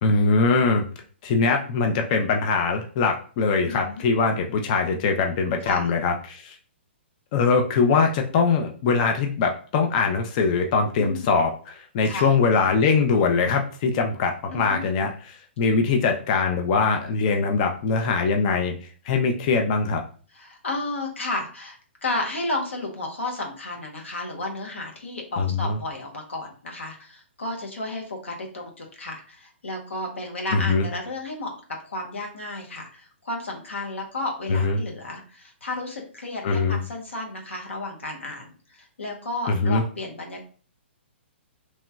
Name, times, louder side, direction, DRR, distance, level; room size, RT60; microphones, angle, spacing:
voice 1, 0.0-0.8 1.2-6.6 7.3-18.8 19.0-20.0 25.4-25.8 30.5-30.8 34.5-34.8 36.4-36.8 39.5-39.8, left 4 dB, 40° left, 4 dB, 0.4 m, -22 dB
voice 2, 3.7-4.0 5.6-5.9 11.0-11.3 12.0-12.3 14.5-14.9 20.3-31.5 31.8-40.5, left 2 dB, 90° left, 1 dB, 0.9 m, -33 dB
3.0 x 2.8 x 2.3 m, 0.41 s
hypercardioid pair, 140°, 7 cm